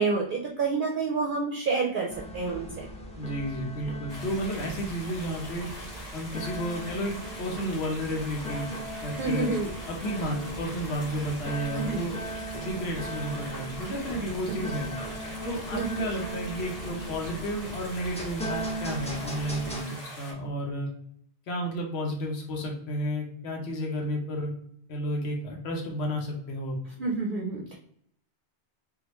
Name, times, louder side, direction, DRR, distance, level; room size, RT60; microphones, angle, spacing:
voice 1, 0.0-2.8 9.2-9.7 11.8-12.0 15.7-15.9 27.0-27.8, right 4 dB, 60° right, -1 dB, 0.6 m, -28 dB
sound 1, 2.1-19.8, right 1 dB, 10° left, 0.3 m, -38 dB
voice 2, 3.2-5.7 6.1-8.7 9.0-9.6 9.9-12.2 12.6-14.9 15.4-20.9 21.5-24.5 24.9-26.8, equal, 70° left, 1 dB, 1.0 m, -32 dB
sound 2, 4.1-20.3, equal, 40° left, 1.0 m, -43 dB
3.5 x 2.3 x 2.9 m, 0.68 s
omnidirectional pair, 1.1 m